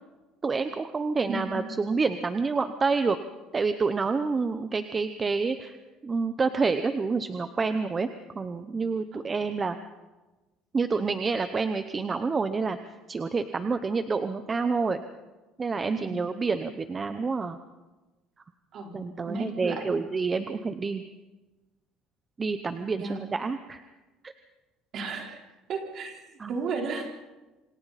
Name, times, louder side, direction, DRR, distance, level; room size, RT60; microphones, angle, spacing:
voice 1, 0.4-3.2 3.5-5.8 6.0-8.1 8.4-9.8 10.7-12.8 13.1-15.0 15.6-17.6 18.9-21.0 22.4-23.8 24.2-24.3 26.4-26.5, right 4 dB, 20° right, 9 dB, 0.8 m, -28 dB
voice 2, 1.3-1.6 9.1-9.3 16.0-16.2 18.7-19.0 19.3-20.0 23.0-23.2 24.9-25.4 25.7-26.2 26.5-27.2, right 3 dB, 45° right, 2 dB, 4.2 m, -34 dB
27.5 x 26.0 x 4.2 m, 1.1 s
cardioid pair, 145°, 0 cm